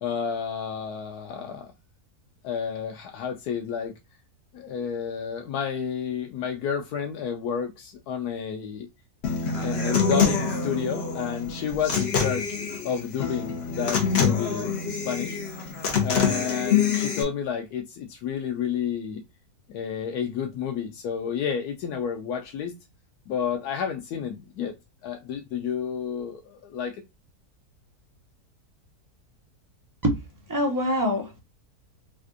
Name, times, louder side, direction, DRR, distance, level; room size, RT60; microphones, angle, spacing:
voice 1, 0.0-1.7 2.4-3.9 4.5-8.9 9.6-12.5 12.8-15.4 16.0-19.2 19.7-22.7 23.3-24.7 25.0-27.0, left 7 dB, 85° left, 1.1 m, -30 dB
Human voice / Acoustic guitar, 9.2-17.2, left 6 dB, 50° left, 0.9 m, -26 dB
voice 2, 30.5-31.4, equal, 20° right, 0.6 m, -24 dB
4.2 x 2.5 x 2.4 m
omnidirectional pair, 1.6 m